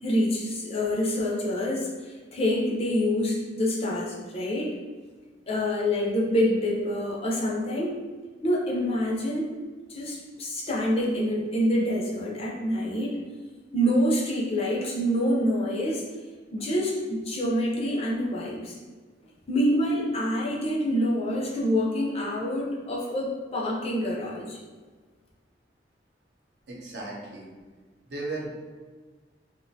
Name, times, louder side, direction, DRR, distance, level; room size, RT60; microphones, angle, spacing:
voice 1, 0.0-4.7 5.5-8.0 8.4-9.5 9.9-13.2 13.7-16.1 16.5-18.8 19.5-24.6, equal, 35° left, -3 dB, 0.4 m, -26 dB
voice 2, 26.7-27.5 28.1-28.5, right 2 dB, 70° right, -4 dB, 0.7 m, -35 dB
2.5 x 2.1 x 2.6 m, 1.4 s
head